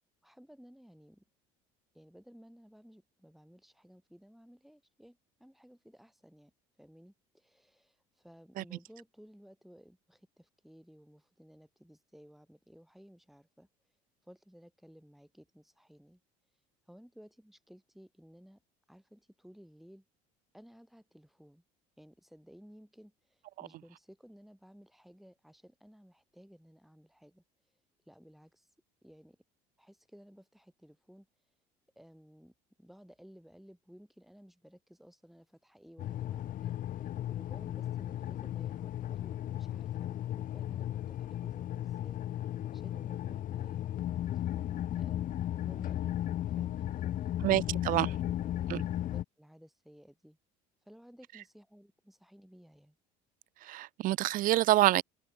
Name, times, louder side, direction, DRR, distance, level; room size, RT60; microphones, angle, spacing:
voice 1, 0.2-1.2 1.9-6.5 6.8-13.7 14.2-16.2 16.9-18.6 18.9-20.0 20.5-21.6 22.0-27.4 28.0-28.7 29.0-29.4 29.8-31.3 31.9-42.2 42.7-44.4 44.9-46.2 46.6-47.8 48.1-50.4 50.8-53.0, equal, ahead, 6.6 m, -57 dB
sound 1, 36.0-49.2, left 12 dB, 50° left, 1.7 m, -35 dB
voice 2, 47.4-48.1 48.7-48.8 53.6-55.0, right 15 dB, 55° right, 0.5 m, -27 dB
supercardioid pair, 85°, 17 cm